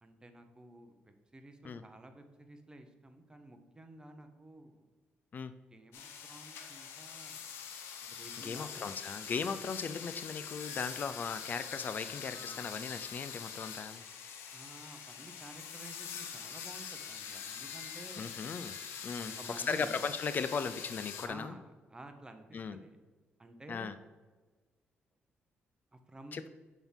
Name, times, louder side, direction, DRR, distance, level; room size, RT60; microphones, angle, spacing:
voice 1, 0.0-4.9 5.7-7.5 8.0-9.4 12.3-12.6 14.5-18.3 19.2-20.0 21.2-23.0 23.4-23.9 25.9-26.5, right 1 dB, 20° right, 7 dB, 0.8 m, -52 dB
sound 1, 5.9-21.3, left 7 dB, 90° left, 0.7 m, -44 dB
voice 2, 8.4-14.0 18.2-18.7 19.0-19.3 19.7-21.5 22.5-22.8 23.7-23.9 26.3-26.5, left 5 dB, 45° left, 12 dB, 0.3 m, -37 dB
5.9 x 3.6 x 5.5 m, 1.3 s
cardioid pair, 80°, 4 cm